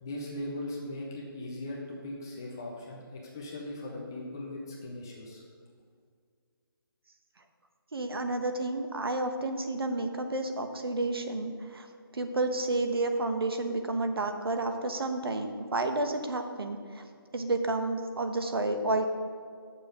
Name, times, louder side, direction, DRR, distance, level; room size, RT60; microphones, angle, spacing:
voice 1, 0.0-5.4, left 1 dB, 10° left, -2 dB, 0.4 m, -39 dB
voice 2, 7.9-11.9 12.1-17.0 17.3-19.1, right 2 dB, 75° right, 6 dB, 1.2 m, -30 dB
9.4 x 6.8 x 5.2 m, 2.2 s
hypercardioid pair, 175°, 12 cm